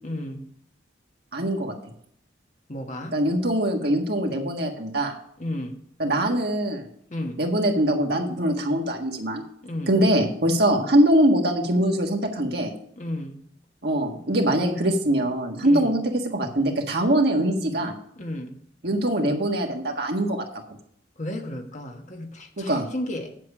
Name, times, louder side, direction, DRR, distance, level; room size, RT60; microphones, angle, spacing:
voice 1, 0.0-0.5 2.7-3.2 5.4-5.7 7.1-7.4 9.6-9.9 13.0-13.4 15.6-15.9 18.2-18.6 21.2-23.3, left 1 dB, 40° left, 3 dB, 1.3 m, -33 dB
voice 2, 1.3-1.7 3.1-5.2 6.0-6.8 7.4-9.4 9.9-12.7 13.8-16.0 16.3-17.9 18.8-20.4 22.6-22.9, right 1 dB, 55° right, 2 dB, 1.6 m, -22 dB
8.6 x 7.7 x 4.8 m, 0.66 s
head